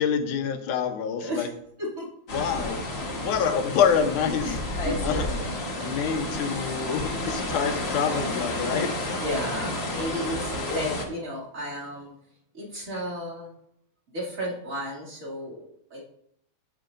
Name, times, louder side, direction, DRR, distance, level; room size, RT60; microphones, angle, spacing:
voice 1, 0.0-1.5 2.3-2.9 3.2-4.6 5.0-5.4 5.8-8.9, left 7 dB, 85° left, 7 dB, 2.4 m, -26 dB
sound 1, 2.3-11.0, left 1 dB, 60° left, 0.6 m, -31 dB
voice 2, 9.1-12.1 12.5-13.5 14.1-16.0, equal, 25° right, -4 dB, 2.7 m, -33 dB
14.5 x 7.1 x 2.6 m, 0.72 s
omnidirectional pair, 3.4 m